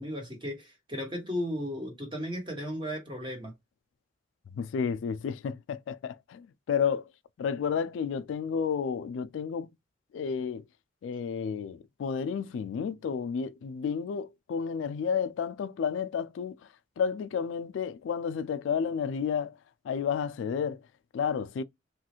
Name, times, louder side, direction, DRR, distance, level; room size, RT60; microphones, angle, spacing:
voice 1, 0.0-3.5, equal, 25° right, 1.2 m, -35 dB
voice 2, 4.5-7.1 7.4-9.7 10.1-10.6 11.0-16.7 17.0-19.6 19.8-20.9 21.1-21.6, left 6 dB, 80° left, 0.3 m, -31 dB
3.1 x 2.3 x 2.9 m
head